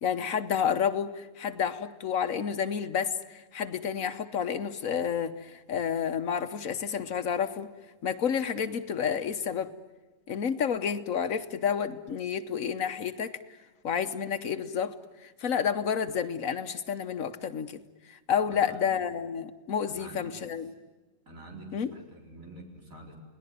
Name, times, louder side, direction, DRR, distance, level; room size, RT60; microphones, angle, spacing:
voice 1, 0.0-7.7 8.0-9.7 10.3-13.4 13.8-14.9 15.2-17.8 18.1-20.7 21.7-21.9, left 7 dB, 80° left, 9 dB, 1.4 m, -30 dB
voice 2, 18.4-19.0 19.9-20.5 21.3-23.1, right 2 dB, 80° right, 0 dB, 4.9 m, -47 dB
29.5 x 19.0 x 9.3 m, 1.2 s
omnidirectional pair, 1.4 m